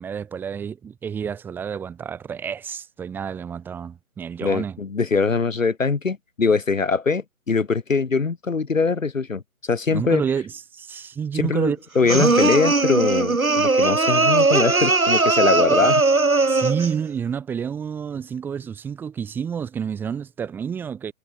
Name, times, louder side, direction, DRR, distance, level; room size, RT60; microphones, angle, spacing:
voice 1, 0.0-4.8 9.9-11.8 12.1-12.3 15.7-15.9 16.5-21.1, right 7 dB, 5° right, 2.4 m, -29 dB
voice 2, 4.4-10.2 11.3-16.0, left 4 dB, 60° left, 2.1 m, -22 dB
sound 1, 12.1-17.0, right 3 dB, 70° right, 5.6 m, -19 dB
figure-of-eight pair, 150°, 44 cm